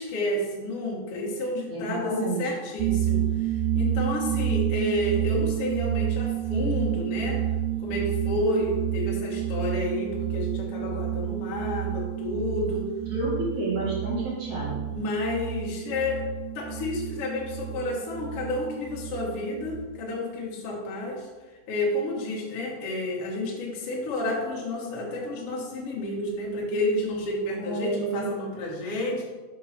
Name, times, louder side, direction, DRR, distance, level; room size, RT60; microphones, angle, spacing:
voice 1, 0.0-7.4 7.8-12.9 14.9-16.2 16.5-21.3 21.7-29.2, left 1 dB, 70° left, -3 dB, 1.3 m, -30 dB
voice 2, 1.7-2.5 13.1-14.8 27.5-28.3, right 3 dB, 55° right, -6 dB, 2.3 m, -30 dB
sound 1, 2.8-19.9, right 11 dB, 85° right, 2.3 m, -29 dB
6.6 x 3.8 x 5.9 m, 1.3 s
omnidirectional pair, 5.1 m